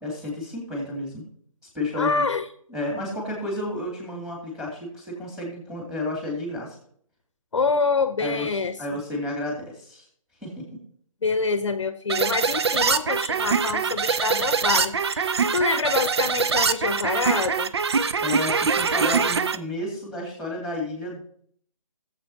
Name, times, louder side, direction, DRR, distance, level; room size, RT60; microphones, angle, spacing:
voice 1, 0.0-1.3 1.7-2.2 2.7-6.8 8.2-8.5 8.8-10.1 10.4-10.8 18.2-21.2, left 1 dB, 5° right, -1 dB, 2.6 m, -31 dB
voice 2, 2.0-2.4 7.5-8.7 11.2-17.7, left 4 dB, 60° left, 11 dB, 0.8 m, -26 dB
sound 1, 12.1-19.6, right 5 dB, 50° right, 0.6 m, -23 dB
17.0 x 7.5 x 2.8 m, 0.62 s
figure-of-eight pair, 150°, 18 cm